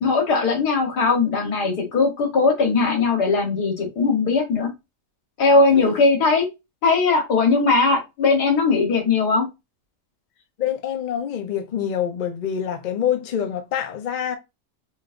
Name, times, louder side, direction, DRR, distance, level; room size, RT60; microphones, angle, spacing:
voice 1, 0.0-4.7 5.4-6.5 6.8-9.5, left 4 dB, 90° left, 1.9 m, -19 dB
voice 2, 10.6-14.4, left 9 dB, 50° left, 0.5 m, -26 dB
4.6 x 3.1 x 2.5 m
omnidirectional pair, 1.7 m